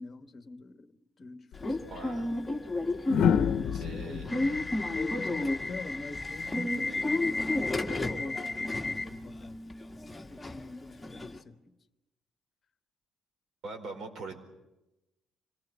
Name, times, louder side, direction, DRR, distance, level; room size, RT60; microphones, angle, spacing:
voice 1, 0.0-1.9 3.1-4.3 4.9-9.7 10.3-11.7, left 2 dB, 35° left, 1.2 m, -44 dB
sound 1, 1.5-1.7 3.1-6.1 7.7-8.0, left 8 dB, 70° left, 0.8 m, -30 dB
Subway metro underground / Alarm, 1.6-11.4, left 2 dB, 10° left, 1.7 m, -32 dB
voice 2, 1.9-2.4 3.8-4.8 13.6-14.4, right 3 dB, 60° right, 4.6 m, -43 dB
26.0 x 19.0 x 8.1 m
cardioid pair, 125°, 0 cm